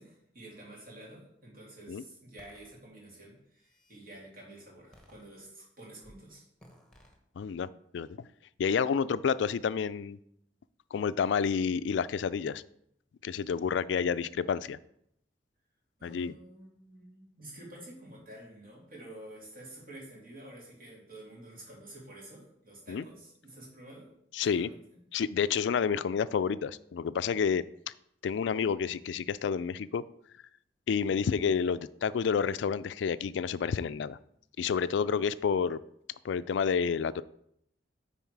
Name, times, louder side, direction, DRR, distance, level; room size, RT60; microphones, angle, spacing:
voice 1, 0.0-6.4 16.0-24.1 24.4-25.0, right 1 dB, 55° right, -4 dB, 3.1 m, -49 dB
sound 1, 2.4-2.7 3.4-4.0 4.9-5.7 6.0-6.2 6.6-7.2, left 1 dB, 5° left, 1.3 m, -58 dB
voice 2, 7.4-7.7 7.9-8.1 8.6-10.2 10.9-12.6 13.2-14.8 16.0-16.3 22.9-23.0 24.3-24.7 25.1-27.6 28.2-30.0 30.9-34.2 34.6-35.8 36.2-37.2, left 6 dB, 80° left, 16 dB, 0.3 m, -29 dB
9.3 x 4.2 x 4.7 m, 0.74 s
head